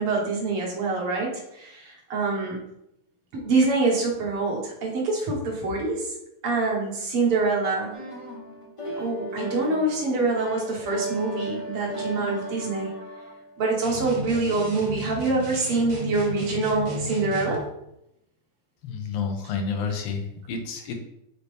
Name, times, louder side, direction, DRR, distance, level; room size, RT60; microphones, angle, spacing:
voice 1, 0.0-2.6 3.3-6.1 6.4-8.0 9.0-12.9 13.6-17.6, right 3 dB, 80° right, -1 dB, 2.4 m, -25 dB
sound 1, 7.9-13.9, right 1 dB, 45° left, 0.3 m, -36 dB
sound 2, 13.8-17.7, equal, 40° right, 1.2 m, -35 dB
voice 2, 18.8-21.0, left 5 dB, 85° left, 4 dB, 1.8 m, -30 dB
6.5 x 4.2 x 3.5 m, 0.80 s
omnidirectional pair, 2.4 m